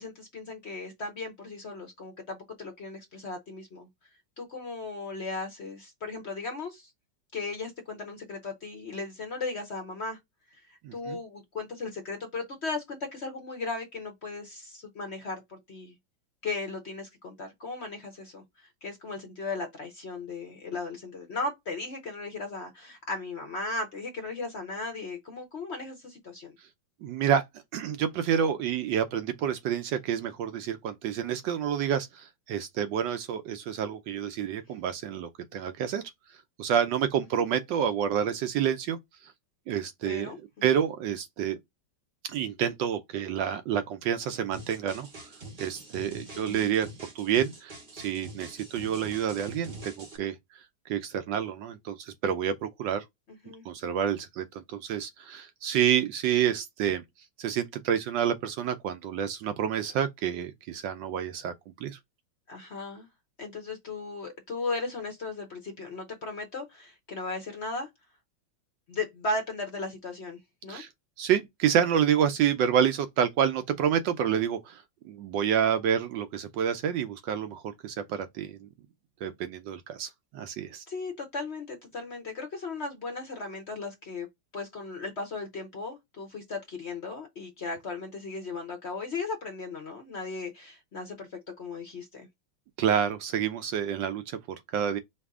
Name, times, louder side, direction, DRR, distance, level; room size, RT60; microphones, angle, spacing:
voice 1, 0.0-3.9 4.4-6.9 7.3-10.2 10.5-15.9 16.4-26.5 37.3-37.5 40.0-40.4 46.3-46.6 53.4-53.7 62.5-63.1 63.4-67.9 68.9-70.8 80.9-84.3 84.5-92.3, left 3 dB, 55° left, 0.7 m, -36 dB
voice 2, 10.8-11.2 27.0-27.4 27.7-36.0 36.6-39.0 39.7-40.3 40.6-41.6 42.3-45.1 45.6-46.9 47.1-50.4 50.9-53.0 53.7-57.0 57.4-61.5 61.8-62.0 70.7-70.9 71.2-78.7 79.2-80.8 92.8-94.4 94.7-95.0, right 9 dB, 75° right, 1.2 m, -28 dB
sound 1, 44.5-50.2, right 1 dB, 40° right, 0.8 m, -44 dB
4.7 x 2.7 x 3.5 m
omnidirectional pair, 2.2 m